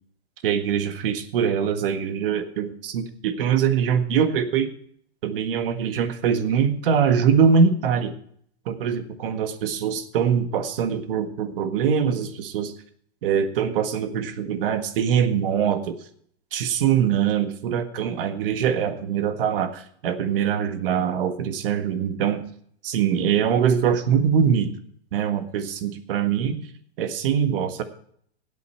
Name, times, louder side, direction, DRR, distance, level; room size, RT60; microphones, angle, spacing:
voice 1, 0.4-4.7 5.2-8.1 8.7-12.7 13.2-16.0 16.5-22.4 22.8-24.7 25.1-26.7 27.0-27.8, right 7 dB, 55° right, 9 dB, 1.7 m, -23 dB
16.5 x 8.3 x 4.6 m, 0.63 s
hypercardioid pair, 150°, 33 cm